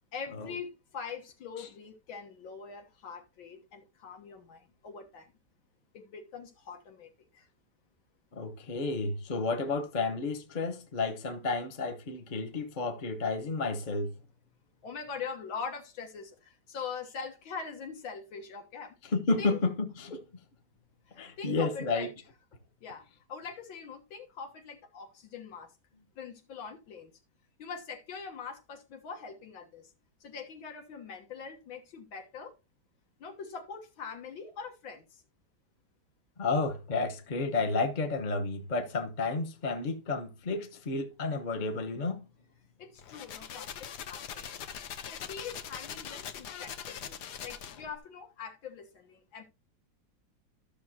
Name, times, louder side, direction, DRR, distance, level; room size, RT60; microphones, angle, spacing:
voice 1, 0.1-5.3 5.9-7.5 14.8-19.0 19.4-19.6 21.1-22.1 22.8-25.7 26.2-27.1 27.6-29.9 30.2-32.5 33.2-35.2 42.8-44.5 45.0-47.2 47.4-49.4, left 5 dB, 80° left, 2.1 m, -43 dB
voice 2, 8.4-14.1 19.1-20.2 21.2-22.1 36.4-42.2, left 3 dB, 30° left, 0.9 m, -31 dB
sound 1, 43.0-48.0, left 8 dB, 65° left, 1.3 m, -42 dB
13.5 x 6.4 x 2.8 m
omnidirectional pair, 2.1 m